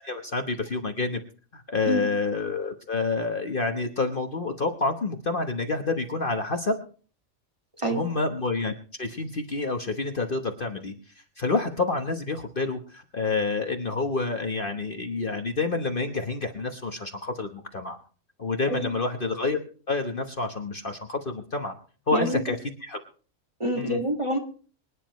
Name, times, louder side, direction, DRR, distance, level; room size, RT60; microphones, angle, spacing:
voice 1, 0.0-1.2 1.5-6.8 7.9-8.7 9.0-10.9 11.4-18.0 18.4-19.6 19.9-21.7 22.1-22.6 22.8-23.0 23.7-24.0, left 3 dB, 40° left, 5 dB, 1.3 m, -28 dB
voice 2, 22.1-22.4 23.6-24.4, right 1 dB, 20° right, 3 dB, 2.0 m, -26 dB
25.0 x 9.9 x 3.1 m, 0.40 s
omnidirectional pair, 1.4 m